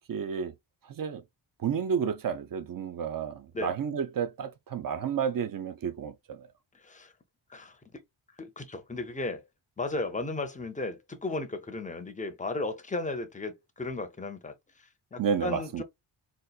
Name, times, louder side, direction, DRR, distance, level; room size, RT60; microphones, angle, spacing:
voice 1, 0.1-0.5 0.9-1.2 1.6-6.5 15.2-15.8, right 7 dB, 45° right, 0.5 m, -31 dB
voice 2, 8.4-9.4 9.8-15.8, left 2 dB, 15° left, 0.5 m, -35 dB
4.1 x 2.4 x 2.3 m
wide cardioid pair, 150°, 48 cm